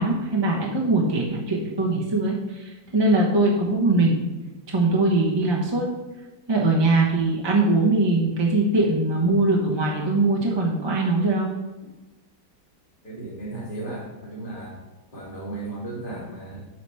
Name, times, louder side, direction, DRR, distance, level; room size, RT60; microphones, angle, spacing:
voice 1, 0.0-4.2 4.7-5.9 6.5-11.5, right 2 dB, 20° right, -3 dB, 0.9 m, -21 dB
voice 2, 13.0-14.8 15.1-16.7, right 2 dB, 30° left, -5 dB, 2.5 m, -35 dB
8.2 x 4.4 x 5.6 m, 1.1 s
omnidirectional pair, 1.9 m